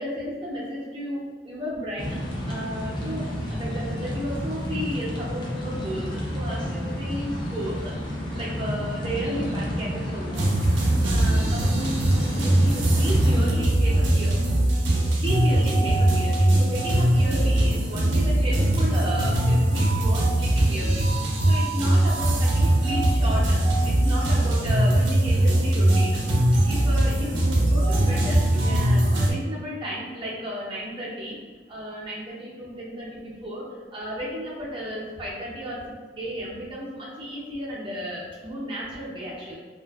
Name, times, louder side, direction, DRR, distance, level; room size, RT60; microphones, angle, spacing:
voice 1, 0.0-8.0 8.3-10.6 11.0-14.4 15.2-21.1 21.5-26.2 26.6-31.4 31.7-35.9 36.2-39.5, equal, 30° right, -6 dB, 0.6 m, -33 dB
sound 1, 2.0-13.5, equal, 25° left, 0.5 m, -30 dB
sound 2, 10.3-29.3, right 1 dB, 90° right, 0.5 m, -21 dB
2.7 x 2.4 x 2.3 m, 1.4 s
head